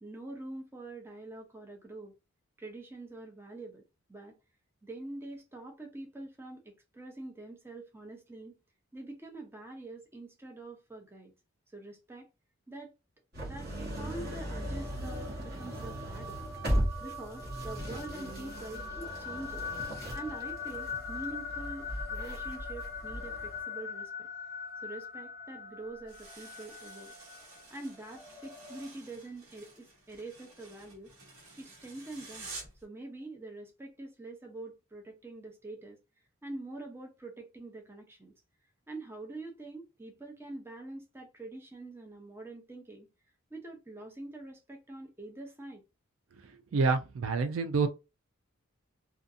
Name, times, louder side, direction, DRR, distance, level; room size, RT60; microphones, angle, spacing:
voice 1, 0.0-2.1 2.6-3.8 4.1-4.4 4.8-8.6 8.9-11.3 11.7-12.3 12.7-12.9 13.4-16.4 17.0-19.7 20.1-24.3 24.8-27.1 27.7-31.1 31.6-32.5 32.8-36.0 36.4-38.3 38.9-43.1 43.5-45.8, right 2 dB, 10° right, 0.5 m, -45 dB
sound 1, 13.3-23.6, equal, 45° right, 1.0 m, -37 dB
sound 2, 13.7-28.9, left 5 dB, 45° left, 0.5 m, -42 dB
sound 3, 26.1-32.8, right 3 dB, 90° right, 1.1 m, -50 dB
voice 2, 46.7-47.9, right 4 dB, 65° right, 0.3 m, -27 dB
2.5 x 2.3 x 2.5 m
head